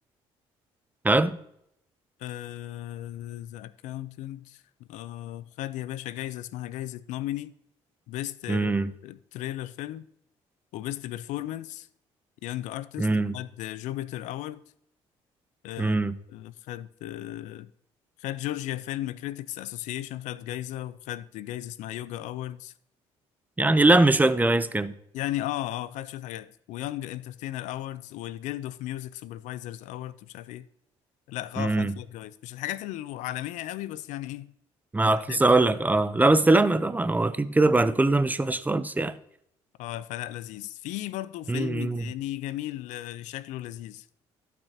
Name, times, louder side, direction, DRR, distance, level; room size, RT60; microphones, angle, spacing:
voice 1, 1.0-1.4 8.5-8.9 13.0-13.3 15.8-16.1 23.6-24.9 31.6-31.9 34.9-39.2 41.5-42.0, right 2 dB, 15° right, 0.6 m, -22 dB
voice 2, 2.2-4.6 4.9-7.5 8.1-8.7 9.0-10.1 10.7-11.9 12.4-14.6 15.6-16.0 16.3-17.7 18.2-22.7 25.1-30.7 31.3-34.5 35.0-35.4 39.8-44.1, left 14 dB, 75° left, 0.5 m, -35 dB
15.5 x 6.0 x 2.8 m
supercardioid pair, 70°, 13 cm